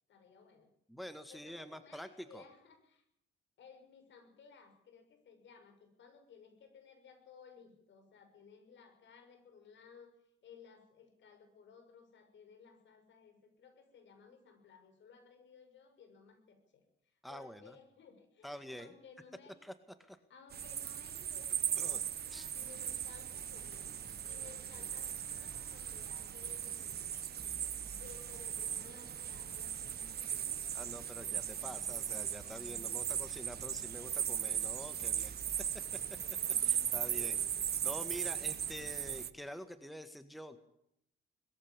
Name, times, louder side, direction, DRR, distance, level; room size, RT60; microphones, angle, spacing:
voice 1, 0.1-0.7 1.3-3.0 3.6-10.1 10.4-19.5 20.3-23.9 24.2-27.2 28.0-30.7 37.1-37.9, left 6 dB, 65° left, 7 dB, 6.6 m, -59 dB
voice 2, 0.9-2.4 17.2-17.8 18.4-18.9 19.6-19.7 20.0-20.2 21.8-22.0 22.3-22.5 30.7-35.4 36.6-37.4 37.8-40.6, equal, ahead, 10 dB, 1.9 m, -47 dB
sound 1, 20.5-39.3, right 9 dB, 55° right, 1.1 m, -38 dB
sound 2, 22.6-39.2, right 2 dB, 20° right, 2.4 m, -56 dB
21.5 x 14.5 x 8.9 m, 0.76 s
cardioid pair, 90°, 20 cm